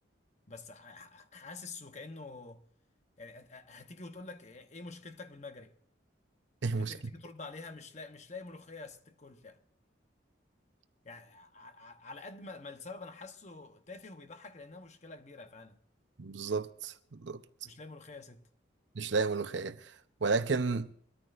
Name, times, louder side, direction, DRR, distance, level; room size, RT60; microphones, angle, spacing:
voice 1, 0.5-2.6 3.2-5.7 6.8-9.6 11.0-15.8 17.6-18.5, left 3 dB, 35° left, 0.9 m, -47 dB
voice 2, 6.6-7.0 16.2-17.4 18.9-19.9 20.2-20.9, right 4 dB, 70° right, 0.8 m, -32 dB
23.0 x 13.5 x 2.5 m
head